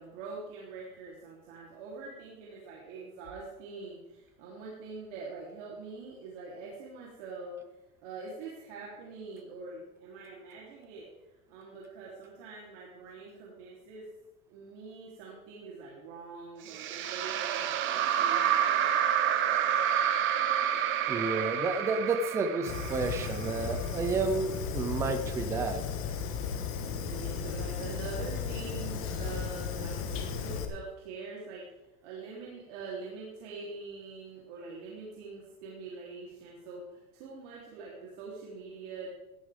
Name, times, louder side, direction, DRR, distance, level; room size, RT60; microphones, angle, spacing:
voice 1, 0.0-7.6 8.0-11.1 11.5-14.1 14.5-18.9 27.0-31.6 32.0-39.1, right 4 dB, 55° right, -4 dB, 3.6 m, -44 dB
sound 1, 16.7-23.9, right 9 dB, 30° right, 1.0 m, -29 dB
voice 2, 20.7-25.8, right 4 dB, 5° right, 8 dB, 0.4 m, -31 dB
Fire, 22.7-30.7, left 6 dB, 30° left, 1.5 m, -35 dB
16.5 x 12.5 x 3.6 m, 1.0 s
supercardioid pair, 160°, 42 cm